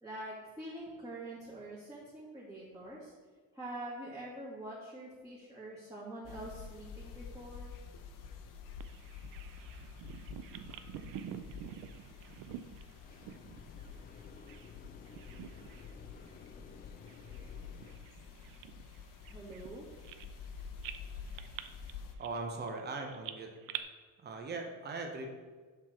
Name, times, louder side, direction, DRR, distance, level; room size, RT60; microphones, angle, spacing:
voice 1, 0.0-3.1 3.5-7.7 19.3-19.8, right 1 dB, 10° right, -9 dB, 2.0 m, -45 dB
sound 1, 6.2-22.1, left 6 dB, 65° left, 1.0 m, -49 dB
Bird vocalization bird call bird song, 8.8-14.8 15.0-16.0 16.3-16.5 17.1-20.5 20.8-23.8, right 11 dB, 65° right, 0.6 m, -48 dB
sound 2, 11.2-18.0, left 5 dB, 25° left, 0.5 m, -55 dB
voice 2, 22.2-23.5 24.2-25.3, right 3 dB, 30° right, 3 dB, 1.0 m, -39 dB
7.4 x 6.0 x 4.4 m, 1.4 s
cardioid pair, 120°, 35 cm